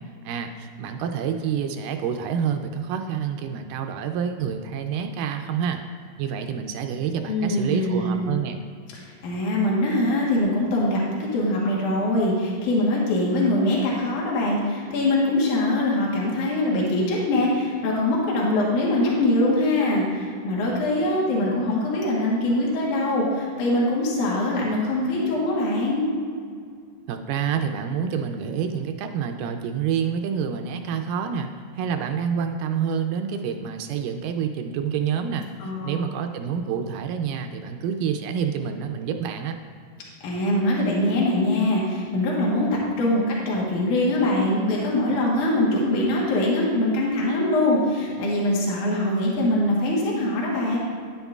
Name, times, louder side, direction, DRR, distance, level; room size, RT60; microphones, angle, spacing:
voice 1, 0.3-5.8 6.2-8.6 27.1-35.5 35.8-39.6, right 7 dB, 80° right, 5 dB, 2.1 m, -28 dB
voice 2, 7.3-8.2 8.9-26.1 35.6-35.9 40.2-50.8, left 1 dB, 70° left, -4 dB, 2.6 m, -23 dB
10.0 x 9.1 x 2.4 m, 2.2 s
omnidirectional pair, 3.9 m